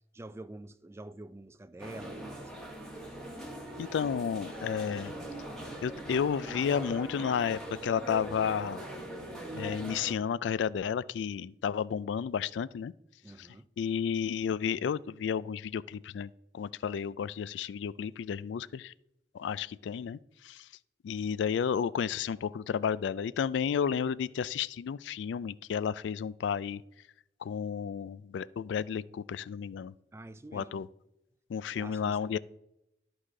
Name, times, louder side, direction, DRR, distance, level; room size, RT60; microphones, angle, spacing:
voice 1, 0.1-2.6 13.2-13.6 30.1-30.7 31.7-32.4, right 2 dB, 15° right, 0.3 m, -47 dB
sound 1, 1.8-10.2, right 1 dB, ahead, 1.5 m, -41 dB
voice 2, 3.8-5.1 5.8-8.8 9.5-12.9 13.4-13.5 13.8-18.9 19.3-20.7 21.0-26.8 27.4-29.9 30.5-30.9 31.5-32.4, left 7 dB, 75° left, 0.3 m, -32 dB
13.0 x 4.8 x 3.7 m
head